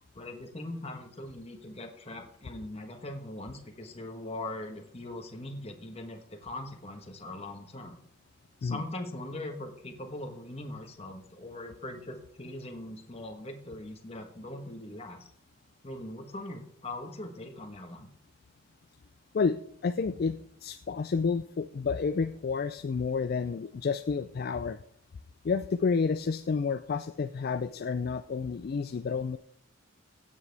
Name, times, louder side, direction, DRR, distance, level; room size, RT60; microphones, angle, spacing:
voice 1, 0.1-8.0 8.6-15.2 15.8-18.1, left 1 dB, 30° left, 4 dB, 1.2 m, -41 dB
voice 2, 19.3-24.8 25.4-29.4, left 5 dB, 45° left, 11 dB, 0.3 m, -30 dB
16.0 x 7.4 x 3.4 m, 0.66 s
head